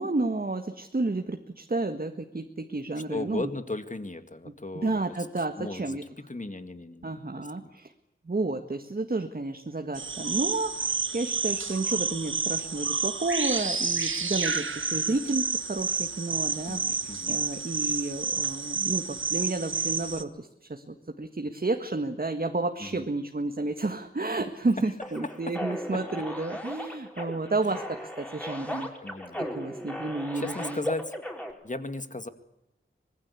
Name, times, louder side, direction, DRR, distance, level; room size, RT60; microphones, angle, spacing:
voice 1, 0.0-3.5 4.8-6.0 7.0-7.9 8.3-17.0 17.3-28.9 29.4-30.8, right 2 dB, 45° right, 5 dB, 1.7 m, -31 dB
voice 2, 3.1-5.0 5.6-6.0 6.3-7.7 16.7-17.4 22.8-23.0 25.5-25.8 27.6-27.8 29.0-29.5 30.3-31.1 31.6-32.3, left 2 dB, 35° left, 9 dB, 2.1 m, -36 dB
sound 1, 10.0-20.2, right 4 dB, 70° right, 1.4 m, -30 dB
sound 2, 25.0-31.5, equal, 5° left, 5.1 m, -37 dB
25.0 x 20.5 x 8.4 m, 0.85 s
wide cardioid pair, 80°, 21 cm